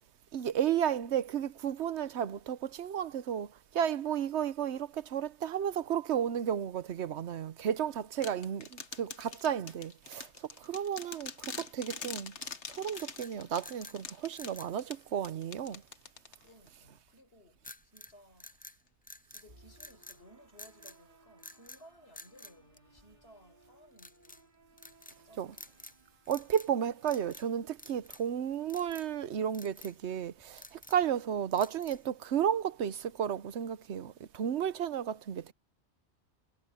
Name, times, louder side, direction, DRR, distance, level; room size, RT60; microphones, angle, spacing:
voice 1, 0.3-12.4 12.7-15.8 25.4-25.5 26.3-35.5, right 9 dB, 80° right, 1.1 m, -33 dB
sound 1, 8.2-16.7, left 5 dB, 85° left, 1.7 m, -45 dB
sound 2, 12.9-14.0 14.3-14.8 17.6-18.1 18.4-19.5 19.8-20.2 20.6-21.0 21.4-21.8 22.1-23.3 24.0-24.4 24.8-25.2 25.5-26.0 26.2-26.7 27.0-27.5 27.8-28.3 28.7-29.1 29.5-30.0 30.4-31.1 31.6-32.1, left 2 dB, 10° left, 0.4 m, -51 dB
voice 2, 16.4-18.5 19.3-24.5 25.1-25.8, equal, 65° left, 5.0 m, -59 dB
sound 3, 19.5-28.5, right 3 dB, 45° right, 3.8 m, -64 dB
omnidirectional pair, 1.1 m